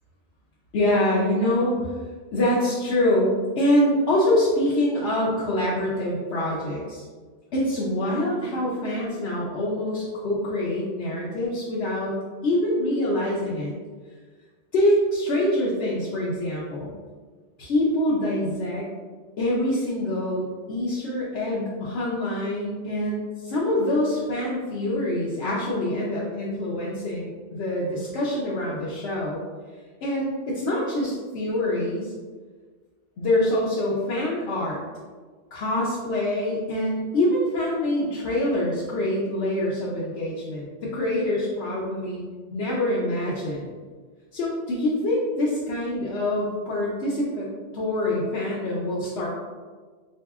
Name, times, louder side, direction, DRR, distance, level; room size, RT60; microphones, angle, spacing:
voice 1, 0.7-1.9 2.3-7.1 7.5-12.2 12.4-13.7 14.7-16.9 17.6-18.9 19.4-29.4 30.0-32.1 33.2-34.8 35.5-42.2 42.5-43.7 44.3-47.5 47.7-49.3, left 1 dB, 70° left, -6 dB, 0.9 m, -25 dB
4.9 x 2.7 x 2.3 m, 1.5 s
omnidirectional pair, 1.2 m